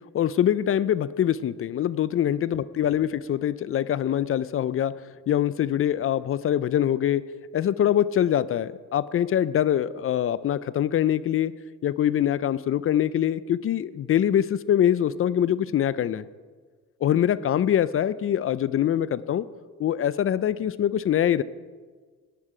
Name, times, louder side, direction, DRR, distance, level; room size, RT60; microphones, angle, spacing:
voice 1, 0.1-4.9 5.3-7.2 7.5-11.5 11.8-16.3 17.0-19.4 19.8-21.4, left 10 dB, 45° left, 17 dB, 0.4 m, -24 dB
11.5 x 9.3 x 4.9 m, 1.5 s
cardioid pair, 90°, 30 cm